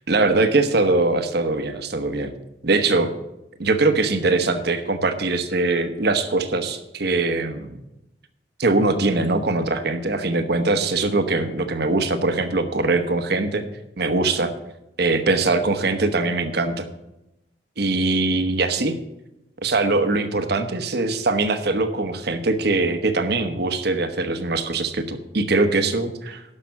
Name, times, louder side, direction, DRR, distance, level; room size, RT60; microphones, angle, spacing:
voice 1, 0.1-2.3 2.6-3.1 3.6-7.8 8.6-13.6 14.0-14.5 15.0-16.9 17.8-18.9 19.6-26.4, right 3 dB, 65° right, 9 dB, 1.0 m, -22 dB
12.0 x 5.9 x 7.2 m, 0.92 s
head